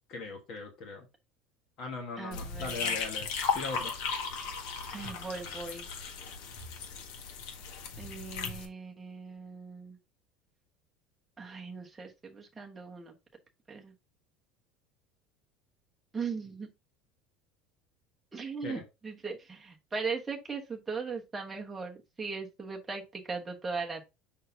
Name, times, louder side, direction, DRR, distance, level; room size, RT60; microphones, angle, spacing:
voice 1, 0.1-1.1 1.8-3.3 3.5-3.9 18.6-18.8, left 4 dB, 35° left, 3 dB, 1.3 m, -39 dB
voice 2, 2.2-3.0 4.9-5.9 8.0-10.0 11.4-13.1 13.7-13.9 16.1-16.7 18.3-24.0, right 4 dB, 10° right, 0 dB, 1.1 m, -39 dB
sound 1, 2.3-8.7, left 5 dB, 70° left, 1.6 m, -36 dB
6.4 x 5.6 x 2.7 m, 0.25 s
cardioid pair, 180°, 0 cm